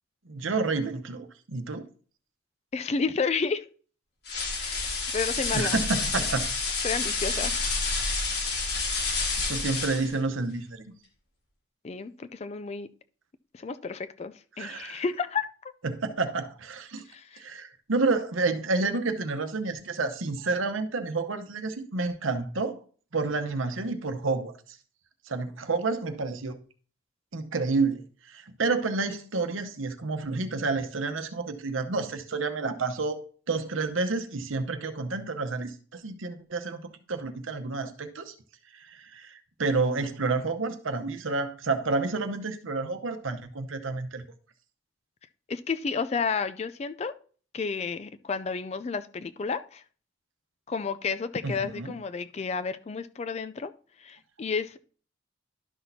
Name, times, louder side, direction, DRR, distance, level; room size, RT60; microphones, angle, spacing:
voice 1, 0.3-1.9 5.5-6.4 7.5-7.6 9.4-10.9 14.6-15.0 15.8-17.0 17.4-22.7 23.1-24.8 25.3-26.6 27.3-36.8 37.1-38.3 38.7-44.2 51.4-51.9, right 3 dB, 80° right, 0.9 m, -30 dB
voice 2, 2.7-3.6 4.6-5.8 6.8-7.5 11.8-12.9 13.5-15.5 17.1-17.4 45.5-47.1 47.5-49.8 50.7-53.7 54.0-54.8, left 5 dB, 30° left, 0.3 m, -31 dB
sound 1, 4.3-10.2, left 3 dB, 55° left, 1.7 m, -29 dB
12.0 x 6.0 x 2.7 m
head